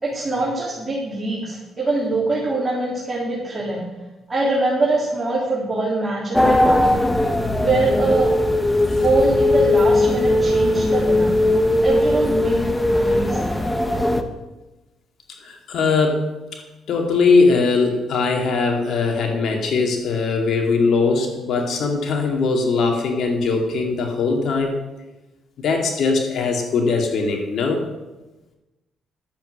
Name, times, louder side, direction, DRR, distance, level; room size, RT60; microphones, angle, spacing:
voice 1, 0.0-3.8 4.3-6.9 7.5-8.3 8.9-11.3 11.8-12.6 12.9-13.5, right 2 dB, 20° right, -6 dB, 3.6 m, -23 dB
sound 1, 6.3-14.2, left 1 dB, 10° left, 1.1 m, -19 dB
voice 2, 15.4-16.3 16.9-24.8 25.6-27.8, left 4 dB, 65° left, 2 dB, 2.6 m, -20 dB
12.0 x 8.0 x 6.7 m, 1.1 s
cardioid pair, 90°, 0 cm